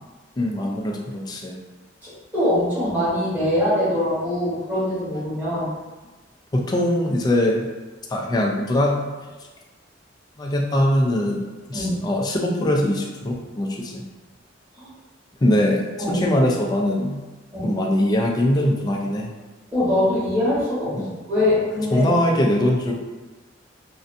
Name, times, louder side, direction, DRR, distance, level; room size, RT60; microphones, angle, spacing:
voice 1, 0.4-1.6 6.5-7.7 8.1-9.0 10.4-11.4 11.7-14.0 15.4-15.8 16.1-17.2 17.6-19.3 20.9-21.1 21.9-22.9, left 1 dB, 20° left, -1 dB, 0.3 m, -21 dB
voice 2, 2.0-5.7 11.7-12.1 14.8-14.9 16.0-16.2 17.5-17.8 19.7-20.9 21.3-22.1, left 1 dB, 10° right, -13 dB, 1.0 m, -23 dB
2.5 x 2.1 x 2.5 m, 1.2 s
head